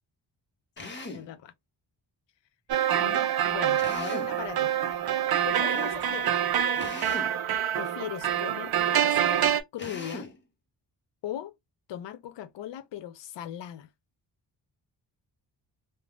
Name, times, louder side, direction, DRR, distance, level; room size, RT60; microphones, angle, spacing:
voice 1, 0.8-1.5 3.0-4.7 5.4-6.3 7.7-10.3 11.2-11.5 11.9-13.9, left 10 dB, 75° left, 0.5 m, -39 dB
Drill, 0.8-1.3 3.8-4.4 6.8-7.4 9.8-10.4, left 2 dB, 25° left, 0.7 m, -39 dB
sound 1, 2.7-9.6, right 10 dB, 55° right, 0.5 m, -26 dB
3.3 x 2.1 x 2.3 m
wide cardioid pair, 135°, 44 cm